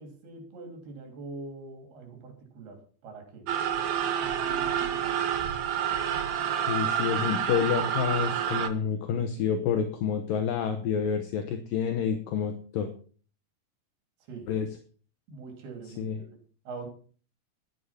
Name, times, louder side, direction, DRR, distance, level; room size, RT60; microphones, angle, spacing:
voice 1, 0.0-3.5 4.2-5.3 14.3-14.5 15.3-16.3 16.7-16.9, right 3 dB, 90° right, 5 dB, 5.2 m, -43 dB
sound 1, 3.5-8.7, right 9 dB, 65° right, 1.8 m, -28 dB
voice 2, 6.7-12.9 14.5-14.7 16.0-16.2, left 7 dB, 70° left, 6 dB, 2.7 m, -28 dB
12.0 x 9.9 x 5.8 m, 0.42 s
omnidirectional pair, 4.4 m